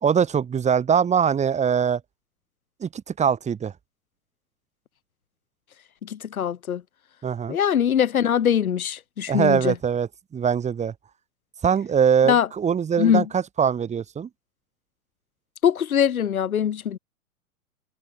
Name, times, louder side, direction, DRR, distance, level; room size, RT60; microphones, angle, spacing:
voice 1, 0.0-2.0 2.8-3.7 7.2-7.6 9.3-10.9 11.6-14.3, right 7 dB, 15° right, 3.3 m, -22 dB
voice 2, 6.0-6.8 7.5-9.8 12.3-12.5 13.0-13.2 15.6-17.0, left 9 dB, 65° left, 2.6 m, -22 dB
figure-of-eight pair, 115°, 45 cm